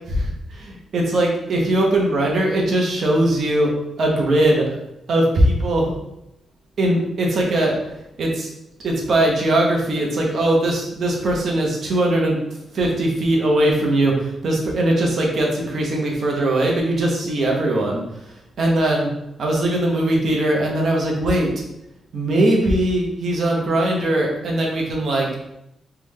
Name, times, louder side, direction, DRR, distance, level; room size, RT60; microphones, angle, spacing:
voice 1, 0.1-3.7 4.0-4.8 5.1-6.0 6.8-7.8 8.2-8.5 8.8-12.4 12.7-18.0 18.6-19.1 19.4-21.5 22.1-25.3, right 1 dB, 55° right, -1 dB, 0.9 m, -20 dB
3.4 x 3.2 x 3.6 m, 0.84 s
wide cardioid pair, 150°, 0 cm